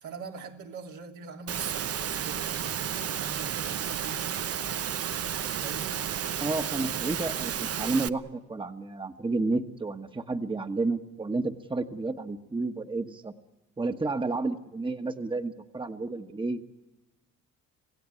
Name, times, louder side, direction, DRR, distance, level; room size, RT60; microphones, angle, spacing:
voice 1, 0.0-4.5 5.3-6.0, right 5 dB, 75° right, 1 dB, 3.2 m, -43 dB
Engine / Mechanisms, 1.5-8.1, right 9 dB, 50° right, 0.9 m, -32 dB
voice 2, 6.4-13.3 13.8-16.6, right 3 dB, 15° right, 7 dB, 1.4 m, -31 dB
26.5 x 17.0 x 9.8 m, 1.0 s
cardioid pair, 90°, 30 cm